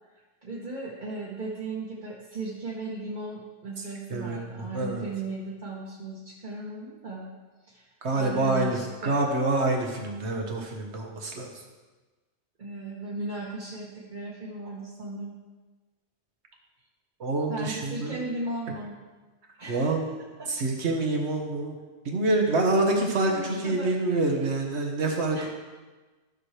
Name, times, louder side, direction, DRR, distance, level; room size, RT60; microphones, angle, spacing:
voice 1, 0.1-7.3 7.6-9.1 12.6-15.4 17.5-19.0 19.6-20.1 20.4-20.5 23.3-23.9 25.3-25.5, right 2 dB, 45° right, -5 dB, 1.2 m, -36 dB
voice 2, 4.1-5.0 8.0-11.5 17.2-18.2 19.7-20.0 20.5-21.8 22.0-25.5, right 2 dB, 75° right, 2 dB, 1.5 m, -26 dB
13.0 x 6.1 x 3.3 m, 1.3 s
omnidirectional pair, 1.1 m